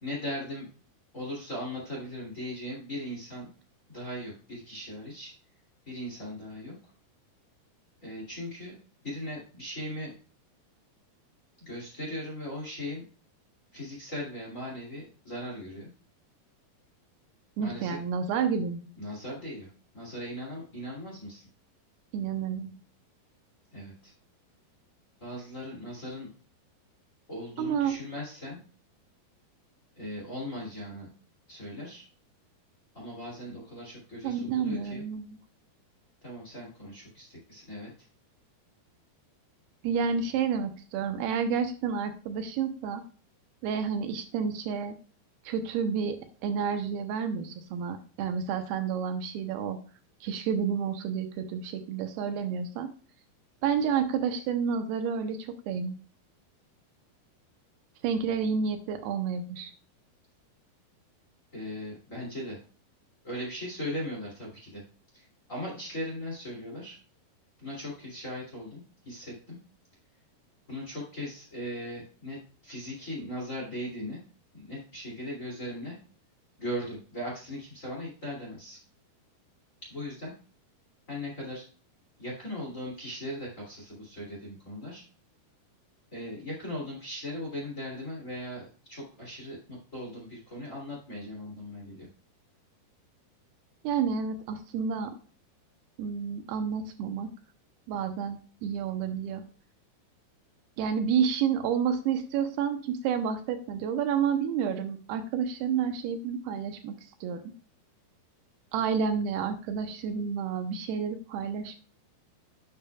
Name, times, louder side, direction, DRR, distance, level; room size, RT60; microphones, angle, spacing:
voice 1, 0.0-0.7 1.1-3.5 3.9-5.3 5.8-6.8 8.0-8.8 9.0-10.1 11.6-13.0 13.7-15.9 17.6-18.0 19.0-21.5 23.7-24.1 25.2-26.3 27.3-28.6 30.0-31.1 31.5-32.0 32.9-35.0 36.2-37.9 61.5-62.6 63.2-64.8 65.1-67.0 67.6-69.6 70.7-74.2 74.5-76.0 76.6-78.8 79.8-80.3 81.1-81.7 82.2-85.0 86.1-92.1, left 1 dB, 25° left, -3 dB, 2.1 m, -38 dB
voice 2, 17.6-18.9 22.1-22.7 27.6-28.0 34.2-35.4 39.8-43.0 43.6-44.9 45.5-49.8 50.2-52.9 53.6-56.0 58.0-59.7 93.8-95.1 96.0-97.3 97.9-99.4 100.8-107.0 107.2-107.4 108.7-111.8, right 7 dB, 80° right, 7 dB, 2.6 m, -30 dB
10.0 x 7.1 x 2.3 m, 0.39 s
omnidirectional pair, 4.7 m